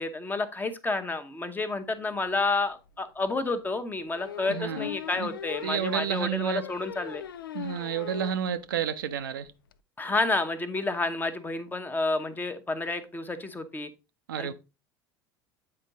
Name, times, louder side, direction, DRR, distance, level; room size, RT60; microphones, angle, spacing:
voice 1, 0.0-7.2 10.0-13.9 14.4-14.5, left 3 dB, 15° left, 0.9 m, -30 dB
sound 1, 2.4-2.5 2.9-3.0 4.1-8.4 8.8-8.9 9.2-9.3 9.5-9.7, left 9 dB, 75° left, 0.4 m, -40 dB
voice 2, 4.5-4.9 5.2-5.3 5.6-6.6 7.5-9.5 14.3-14.5, right 9 dB, 70° right, 0.6 m, -30 dB
8.7 x 4.5 x 3.9 m
figure-of-eight pair, 65°, 12 cm